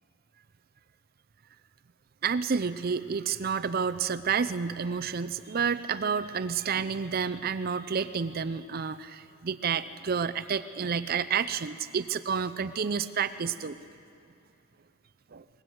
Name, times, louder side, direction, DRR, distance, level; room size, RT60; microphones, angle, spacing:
voice 1, 2.2-13.8 15.3-15.4, right 6 dB, 45° right, 14 dB, 0.5 m, -30 dB
22.5 x 20.0 x 7.8 m, 2.5 s
head